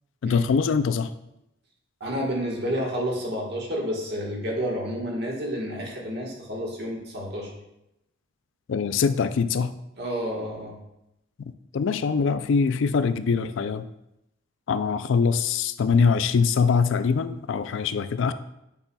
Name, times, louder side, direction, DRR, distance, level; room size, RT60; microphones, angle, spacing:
voice 1, 0.2-1.1 8.7-9.7 11.7-13.9 14.7-18.3, left 5 dB, 60° left, 12 dB, 0.3 m, -23 dB
voice 2, 2.0-7.5 10.0-10.7, equal, 50° right, -2 dB, 1.4 m, -30 dB
8.9 x 5.5 x 2.3 m, 0.85 s
head